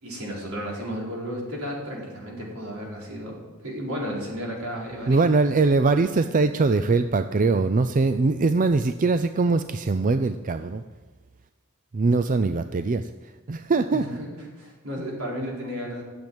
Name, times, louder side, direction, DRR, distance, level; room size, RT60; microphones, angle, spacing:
voice 1, 0.0-3.4 3.6-5.2 12.4-12.6 13.9-14.3 14.6-16.0, equal, 75° right, -3 dB, 4.5 m, -33 dB
voice 2, 5.1-10.8 11.9-13.0 13.5-14.0, right 3 dB, 40° right, 10 dB, 0.4 m, -22 dB
13.5 x 7.9 x 8.9 m, 1.3 s
head